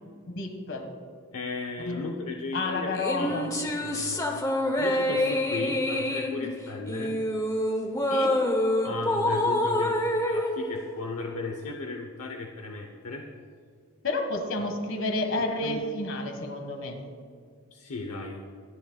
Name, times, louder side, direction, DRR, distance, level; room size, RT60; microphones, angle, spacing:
voice 1, 0.3-0.9 1.9-2.1 2.5-3.5 8.1-8.4 14.0-17.0, left 2 dB, 55° left, 5 dB, 1.7 m, -30 dB
voice 2, 1.3-3.3 3.6-4.4 4.8-7.2 8.8-13.3 15.6-15.8 17.7-18.4, left 3 dB, 75° left, 2 dB, 0.9 m, -35 dB
sound 1, 2.9-11.5, left 1 dB, 15° left, 0.9 m, -27 dB
25.5 x 10.5 x 2.4 m, 2.1 s
head